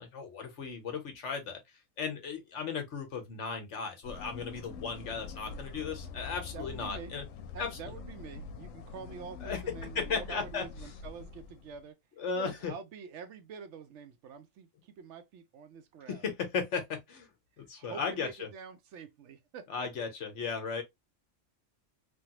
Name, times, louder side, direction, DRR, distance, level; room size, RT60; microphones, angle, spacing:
voice 1, 0.0-1.6 2.0-7.2 7.6-7.8 9.4-10.6 12.2-12.7 16.1-17.3 17.6-18.5 19.7-20.8, left 5 dB, 65° left, 1.2 m, -36 dB
sound 1, 4.0-11.8, left 5 dB, 90° left, 1.0 m, -45 dB
voice 2, 6.5-7.1 7.5-12.0 12.4-16.3 17.6-19.9, right 6 dB, 70° right, 0.9 m, -46 dB
3.3 x 2.3 x 2.8 m
omnidirectional pair, 1.3 m